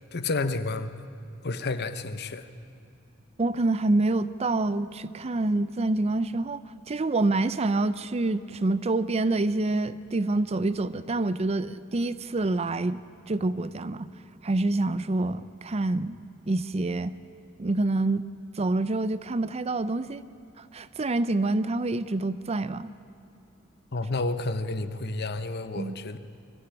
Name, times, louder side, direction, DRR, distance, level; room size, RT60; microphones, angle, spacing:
voice 1, 0.1-0.9 1.4-2.5 23.9-26.2, left 3 dB, 55° left, 11 dB, 0.9 m, -30 dB
voice 2, 3.4-6.6 6.9-13.0 13.3-14.1 14.4-16.2 16.5-17.1 17.6-18.2 18.6-20.2 20.6-22.9 25.8-26.0, right 2 dB, 30° right, 15 dB, 0.5 m, -27 dB
24.0 x 14.0 x 9.9 m, 2.7 s
head